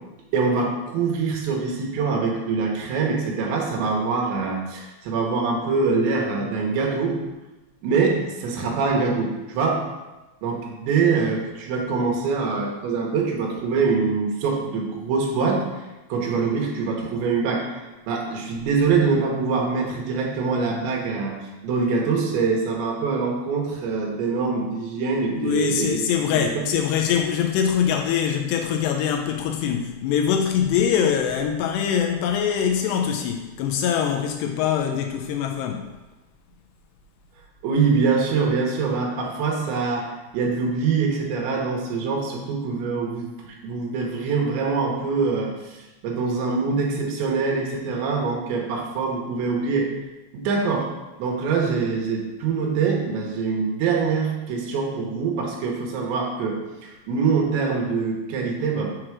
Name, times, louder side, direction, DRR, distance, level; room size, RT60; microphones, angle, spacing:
voice 1, 0.3-7.2 7.8-9.8 10.4-21.4 21.6-26.0 26.3-26.5 37.6-40.0 40.3-49.9 50.3-50.9 51.2-58.9, right 4 dB, 85° right, -1 dB, 3.5 m, -24 dB
voice 2, 25.4-35.9, left 8 dB, 80° left, 3 dB, 2.6 m, -23 dB
7.4 x 4.8 x 6.1 m, 1.1 s
omnidirectional pair, 5.0 m